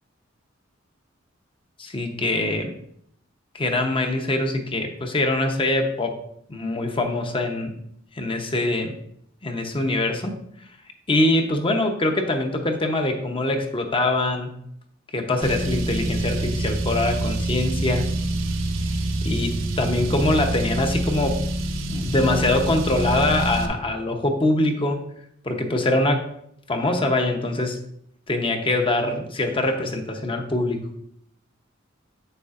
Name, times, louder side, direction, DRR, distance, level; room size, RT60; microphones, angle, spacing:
voice 1, 1.8-2.7 3.5-6.2 6.5-7.7 8.1-9.0 9.4-10.3 11.1-14.5 15.1-18.1 19.2-21.4 21.9-25.1 25.4-26.3 26.7-27.8 28.3-30.9, left 2 dB, 25° left, 4 dB, 0.8 m, -23 dB
Car, 15.4-23.7, right 1 dB, 85° right, 0.8 m, -26 dB
8.3 x 6.8 x 2.5 m, 0.70 s
head